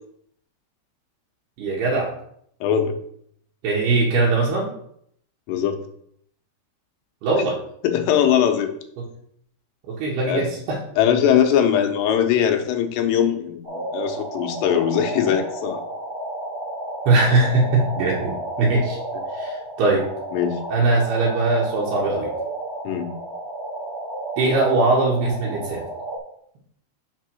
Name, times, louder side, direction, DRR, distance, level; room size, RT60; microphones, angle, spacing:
voice 1, 1.6-2.1 3.6-4.7 7.2-7.6 9.0-9.1 9.9-10.8 17.1-19.0 19.3-20.0 20.7-22.3 24.4-25.8, right 3 dB, 75° right, -4 dB, 3.2 m, -21 dB
voice 2, 2.6-3.0 5.5-5.8 7.8-8.7 10.3-10.5 11.0-15.8 20.3-20.6 22.8-23.1, left 9 dB, 85° left, 5 dB, 3.1 m, -20 dB
sound 1, 13.6-26.2, right 2 dB, 30° right, 1.0 m, -32 dB
7.3 x 3.7 x 6.2 m, 0.68 s
omnidirectional pair, 4.9 m